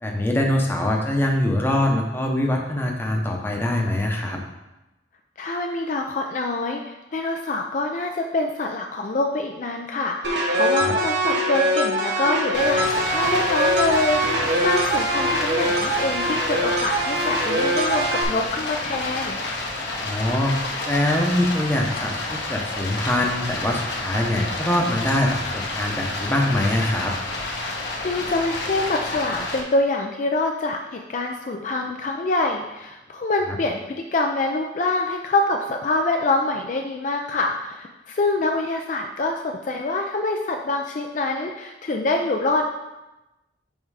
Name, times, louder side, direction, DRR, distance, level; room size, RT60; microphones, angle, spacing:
voice 1, 0.0-4.4 20.0-20.5 20.9-27.1 33.5-33.6, left 1 dB, 10° left, 0 dB, 0.8 m, -23 dB
voice 2, 5.4-19.4 28.0-42.7, left 2 dB, 40° left, 3 dB, 0.4 m, -25 dB
sound 1, 10.2-18.2, right 1 dB, 65° right, 1.0 m, -23 dB
Stream, 12.5-29.6, left 2 dB, 65° left, 1.1 m, -30 dB
5.4 x 4.6 x 4.8 m, 1.0 s
head